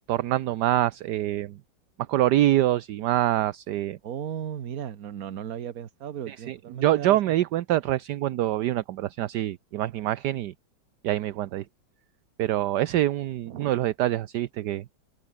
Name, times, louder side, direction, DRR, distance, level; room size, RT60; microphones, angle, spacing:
voice 1, 0.1-1.6 2.1-4.0 6.3-10.5 11.0-11.6 12.4-14.8, right 14 dB, 70° right, 1.2 m, -25 dB
voice 2, 4.0-7.3 13.4-13.7, right 9 dB, 50° right, 1.5 m, -36 dB
open air
omnidirectional pair, 2.1 m